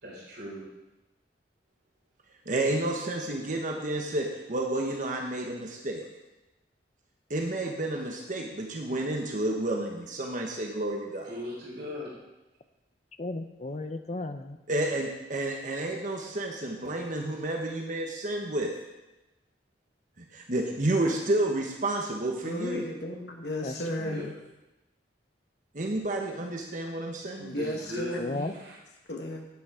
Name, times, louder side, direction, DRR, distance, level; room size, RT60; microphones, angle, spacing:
voice 1, 0.0-0.7 11.2-12.2 24.0-24.3 27.5-28.8, left 1 dB, 60° right, -3 dB, 3.7 m, -39 dB
voice 2, 2.4-6.0 7.3-11.3 14.7-18.7 20.2-22.8 25.7-27.6, right 1 dB, 45° right, 1 dB, 1.2 m, -30 dB
voice 3, 13.2-14.6 23.6-24.3 28.1-28.5, left 2 dB, 40° left, 9 dB, 0.8 m, -35 dB
voice 4, 22.4-24.3 27.4-28.5 29.1-29.5, left 1 dB, 65° left, 1 dB, 1.4 m, -34 dB
11.5 x 9.3 x 4.9 m, 1.0 s
head